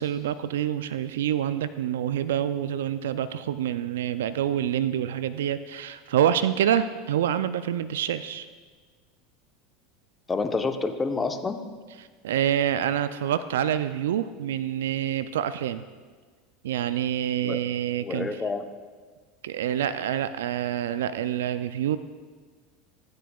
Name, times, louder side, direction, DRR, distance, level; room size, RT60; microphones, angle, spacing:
voice 1, 0.0-8.5 12.2-15.9 16.6-18.3 19.4-22.0, right 10 dB, 80° right, 13 dB, 0.3 m, -27 dB
voice 2, 10.3-11.6 17.4-17.6 18.0-18.6, left 4 dB, 20° left, 7 dB, 0.9 m, -28 dB
14.5 x 9.3 x 2.3 m, 1.5 s
hypercardioid pair, 85°, 0 cm